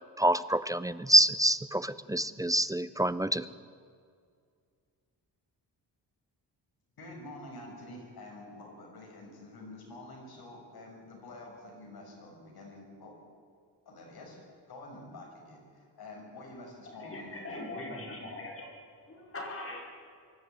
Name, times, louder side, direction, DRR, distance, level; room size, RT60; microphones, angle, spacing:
voice 1, 0.0-3.5, right 1 dB, 10° right, 15 dB, 0.4 m, -26 dB
voice 2, 7.0-13.1 13.8-14.4 14.7-17.6, left 2 dB, 60° left, 0 dB, 6.4 m, -48 dB
voice 3, 16.9-18.7 19.0-19.8, left 2 dB, 35° left, 0 dB, 5.0 m, -41 dB
24.5 x 12.0 x 9.1 m, 2.2 s
wide cardioid pair, 145°, 41 cm